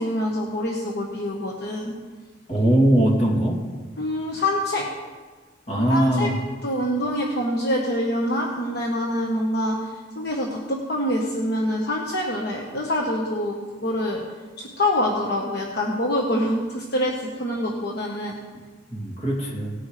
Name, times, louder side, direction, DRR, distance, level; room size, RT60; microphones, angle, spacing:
voice 1, 0.0-1.9 4.0-4.9 5.7-6.3 6.6-13.6 13.8-14.2 14.6-18.3, left 1 dB, 60° left, -1 dB, 1.3 m, -25 dB
voice 2, 2.5-3.6 5.7-6.3 18.9-19.7, right 1 dB, 40° left, -2 dB, 2.9 m, -20 dB
18.5 x 9.8 x 3.3 m, 1.4 s
head